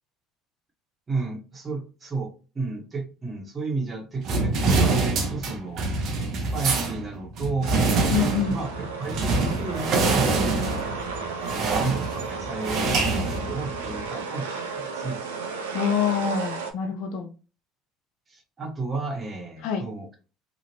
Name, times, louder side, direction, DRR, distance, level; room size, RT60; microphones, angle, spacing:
voice 1, 1.1-5.9 6.5-10.6 11.5-15.2 18.3-20.2, right 3 dB, 30° right, 1.2 m, -32 dB
sound 1, 4.2-14.1, right 3 dB, 55° right, 0.7 m, -25 dB
sound 2, 7.8-16.7, right 4 dB, 85° right, 0.4 m, -34 dB
voice 2, 8.1-8.6 15.7-17.3 19.6-19.8, left 7 dB, 65° left, 0.4 m, -26 dB
2.9 x 2.4 x 3.0 m
hypercardioid pair, 65°, 0 cm